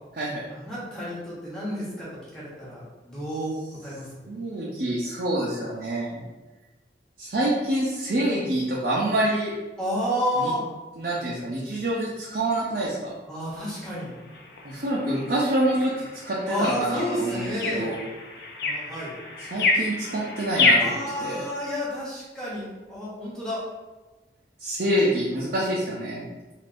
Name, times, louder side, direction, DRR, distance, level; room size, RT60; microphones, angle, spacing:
voice 1, 0.5-3.5 3.8-4.3 9.8-10.6 13.3-14.1 16.5-17.9 18.6-19.1 20.8-23.6, equal, 5° left, -9 dB, 0.9 m, -30 dB
voice 2, 4.3-6.2 7.2-9.5 10.4-10.5 11.0-13.1 14.6-18.0 19.5-21.5 24.6-26.3, right 1 dB, 60° right, -6 dB, 0.5 m, -26 dB
sound 1, 13.9-21.0, left 3 dB, 65° left, 0.5 m, -28 dB
3.4 x 2.5 x 2.5 m, 1.2 s
head